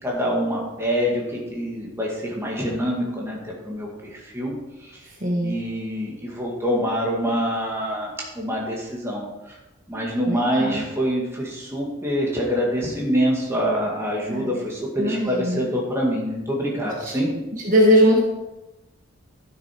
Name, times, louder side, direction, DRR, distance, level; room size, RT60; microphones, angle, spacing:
voice 1, 0.0-4.5 4.8-5.0 5.4-9.6 9.9-17.3, equal, 10° right, -3 dB, 2.1 m, -25 dB
voice 2, 5.2-5.6 10.3-10.8 14.3-14.5 15.0-15.7 17.6-18.2, equal, 40° right, -2 dB, 1.5 m, -20 dB
12.0 x 6.9 x 4.6 m, 1.0 s
head